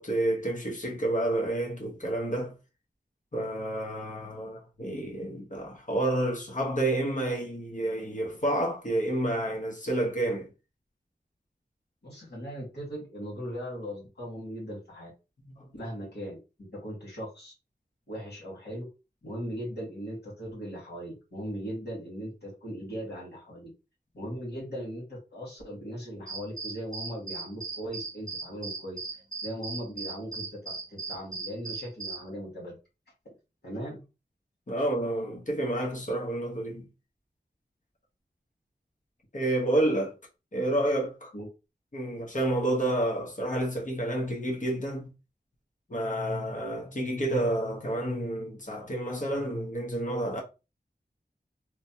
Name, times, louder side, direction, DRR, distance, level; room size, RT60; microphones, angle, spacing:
voice 1, 0.0-2.5 3.3-10.5 15.6-15.7 34.7-36.9 39.3-40.1 40.5-41.3 41.9-45.1 45.9-50.4, right 1 dB, 50° left, 1.1 m, -29 dB
voice 2, 12.0-15.1 15.7-17.5 18.1-18.9 19.2-23.7 24.1-32.8 33.6-34.0 41.3-41.5, equal, 75° left, 1.7 m, -39 dB
sound 1, 26.3-32.2, right 4 dB, 50° right, 0.8 m, -38 dB
3.1 x 2.1 x 2.8 m
wide cardioid pair, 50°, 17 cm